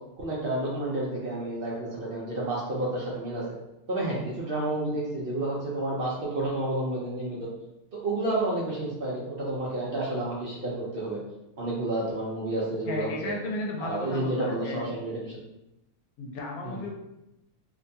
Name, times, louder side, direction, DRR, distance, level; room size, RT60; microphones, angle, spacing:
voice 1, 0.2-3.4 3.9-7.5 7.9-11.2 11.6-13.4 13.8-15.4 16.6-16.9, right 2 dB, 65° right, -5 dB, 0.5 m, -30 dB
voice 2, 12.9-14.9 16.2-16.9, left 2 dB, 80° left, 0 dB, 1.0 m, -34 dB
2.6 x 2.2 x 2.6 m, 0.90 s
omnidirectional pair, 1.5 m